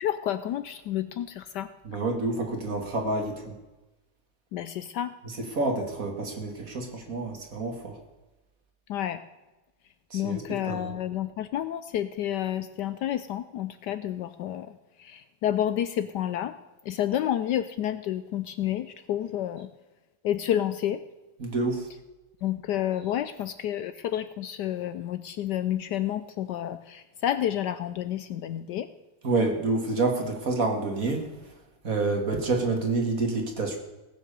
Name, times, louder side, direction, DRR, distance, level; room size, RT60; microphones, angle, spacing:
voice 1, 0.0-1.7 4.5-5.1 8.9-9.2 10.1-14.7 15.0-16.5 16.9-19.7 20.2-21.0 22.4-28.9, left 11 dB, 70° left, 12 dB, 1.1 m, -30 dB
voice 2, 1.8-3.5 5.2-8.0 10.1-10.9 21.4-21.8 29.2-31.2 31.8-33.8, right 3 dB, 45° right, 4 dB, 2.3 m, -28 dB
18.0 x 7.7 x 6.8 m, 1.1 s
omnidirectional pair, 2.1 m